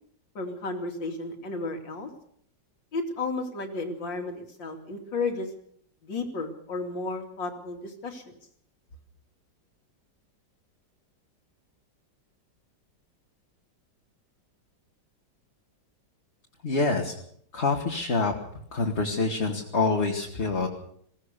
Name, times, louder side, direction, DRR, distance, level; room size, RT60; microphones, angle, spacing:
voice 1, 0.4-2.1 2.9-5.5 6.0-8.3, left 3 dB, 80° left, 4 dB, 3.4 m, -33 dB
voice 2, 16.6-17.2 17.5-18.3 18.7-20.7, left 3 dB, 35° left, 0 dB, 2.4 m, -26 dB
22.0 x 17.5 x 6.8 m, 0.65 s
omnidirectional pair, 2.0 m